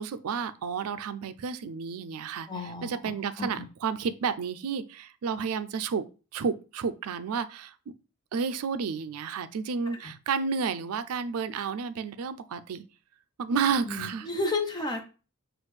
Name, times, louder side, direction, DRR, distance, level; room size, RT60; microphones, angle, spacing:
voice 1, 0.0-6.0 6.3-7.9 8.3-12.8 13.4-14.3, right 6 dB, 80° right, 0.4 m, -31 dB
voice 2, 2.5-2.9 3.4-3.5 9.9-10.1 13.9-15.0, left 2 dB, 20° left, 0.6 m, -32 dB
6.2 x 2.4 x 3.2 m
head